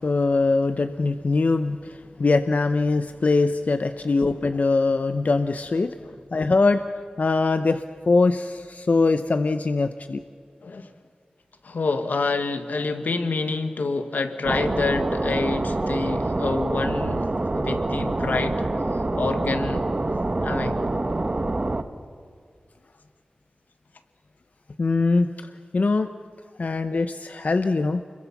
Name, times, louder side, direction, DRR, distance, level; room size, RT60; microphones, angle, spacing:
voice 1, 0.0-6.0 6.3-6.8 7.2-10.2 24.8-26.1 26.6-28.0, left 3 dB, 60° left, 10 dB, 0.7 m, -22 dB
voice 2, 11.6-18.6 18.9-19.9 20.4-20.8, left 3 dB, 85° left, 8 dB, 1.6 m, -28 dB
sound 1, 14.4-21.8, right 2 dB, 40° right, 1.2 m, -26 dB
29.0 x 22.0 x 6.0 m, 2.1 s
wide cardioid pair, 60°, 3 cm